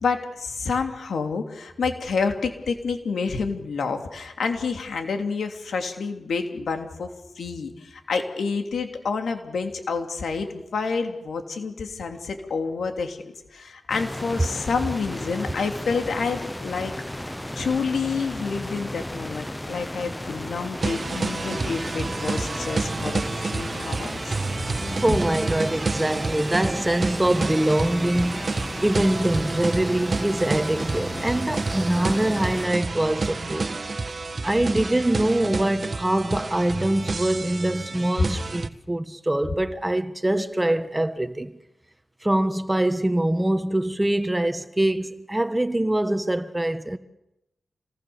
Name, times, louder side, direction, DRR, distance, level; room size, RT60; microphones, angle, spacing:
voice 1, 0.0-7.1 7.4-16.9 17.6-24.3, left 5 dB, 80° left, 3.1 m, -28 dB
sound 1, 13.9-32.7, left 1 dB, 10° left, 0.9 m, -34 dB
sound 2, 20.8-38.7, right 3 dB, 50° right, 1.4 m, -29 dB
voice 2, 24.9-33.7 34.4-41.5 42.2-47.0, right 1 dB, 15° right, 1.5 m, -24 dB
27.5 x 19.5 x 7.2 m
cardioid pair, 60°, 0 cm